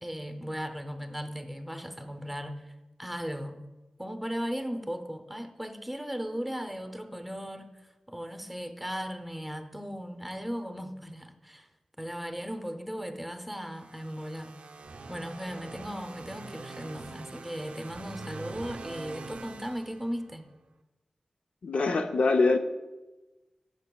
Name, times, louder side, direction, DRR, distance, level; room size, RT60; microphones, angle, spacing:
voice 1, 0.0-2.6 3.0-3.6 4.0-7.7 8.1-11.7 12.0-14.5 15.1-20.4, equal, 5° right, 7 dB, 0.6 m, -37 dB
sound 1, 13.6-20.5, right 3 dB, 75° right, 0.4 m, -44 dB
voice 2, 21.6-22.6, left 3 dB, 80° left, 6 dB, 0.5 m, -23 dB
12.5 x 5.2 x 2.3 m, 1.1 s
wide cardioid pair, 75°, 2 cm